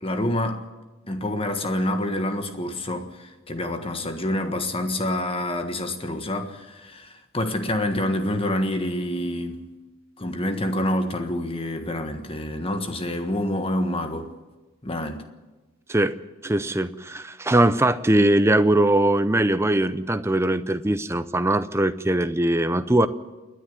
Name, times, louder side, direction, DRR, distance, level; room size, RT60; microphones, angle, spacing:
voice 1, 0.0-0.6 1.1-9.6 10.2-14.3 14.8-15.3, left 1 dB, 25° left, 1.4 m, -27 dB
voice 2, 16.4-23.1, right 1 dB, 10° right, 0.5 m, -21 dB
28.0 x 10.0 x 9.5 m
head